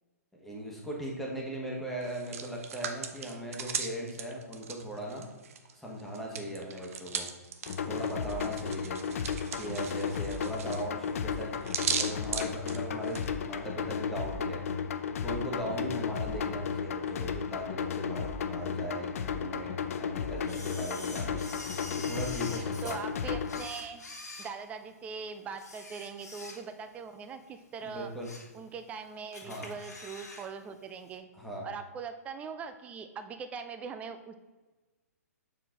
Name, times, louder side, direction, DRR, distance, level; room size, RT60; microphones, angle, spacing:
voice 1, 0.4-5.3 5.7-7.3 7.8-9.0 9.5-11.5 11.9-14.6 15.2-21.5 22.0-23.0 27.8-28.3 29.4-29.7 31.3-31.7, equal, ahead, -3 dB, 1.5 m, -38 dB
Hands, 2.0-5.7 6.0-13.3, right 7 dB, 55° right, 0.7 m, -38 dB
sound 1, 7.7-23.7, left 7 dB, 55° left, 0.5 m, -34 dB
Camera, 20.5-23.0 23.4-25.1 25.5-26.9 27.3-27.4 27.9-28.6 28.9-29.0 29.3-30.5 30.7-30.8, left 3 dB, 75° left, 1.5 m, -45 dB
voice 2, 22.8-24.0 24.4-28.1 28.5-31.3 31.6-34.4, right 5 dB, 15° right, 9 dB, 0.5 m, -41 dB
7.1 x 4.5 x 3.9 m, 1.2 s
figure-of-eight pair, 125°, 9 cm